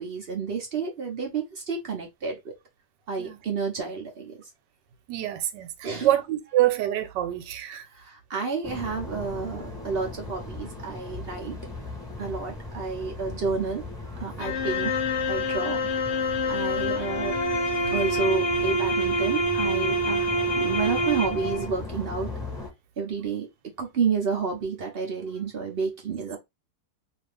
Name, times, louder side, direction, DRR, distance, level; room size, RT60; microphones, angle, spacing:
voice 1, 0.0-2.5 3.1-4.3 5.8-6.1 7.9-11.6 12.2-14.9 15.3-15.8 16.1-17.4 17.9-20.3 20.6-22.3 23.0-23.5 23.8-26.4, right 5 dB, 70° right, 0.5 m, -30 dB
voice 2, 5.1-5.7 6.0-7.9, right 13 dB, 85° right, 1.3 m, -25 dB
sound 1, 8.6-22.7, left 2 dB, 5° left, 0.7 m, -39 dB
sound 2, 14.4-21.7, equal, 70° left, 0.4 m, -26 dB
sound 3, 16.5-22.6, left 7 dB, 50° left, 1.0 m, -46 dB
2.7 x 2.5 x 3.3 m
omnidirectional pair, 1.8 m